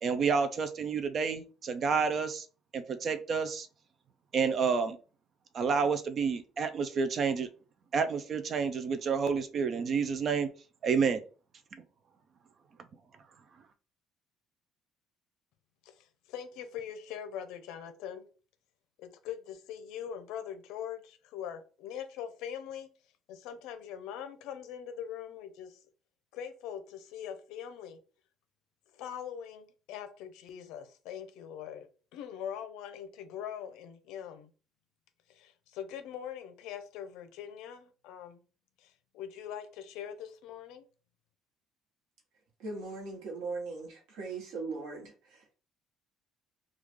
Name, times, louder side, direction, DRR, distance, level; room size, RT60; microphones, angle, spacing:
voice 1, 0.0-2.5 2.7-3.7 4.3-5.0 5.5-7.5 7.9-10.5 10.8-11.2, right 5 dB, 35° right, 0.3 m, -29 dB
voice 2, 15.9-18.3 19.0-22.9 23.3-25.8 26.3-28.0 28.9-34.5 35.3-38.4 38.8-40.9, left 9 dB, 80° left, 0.6 m, -42 dB
voice 3, 42.6-45.6, right 3 dB, 90° right, 1.2 m, -39 dB
3.1 x 2.3 x 3.5 m
cardioid pair, 170°, 0 cm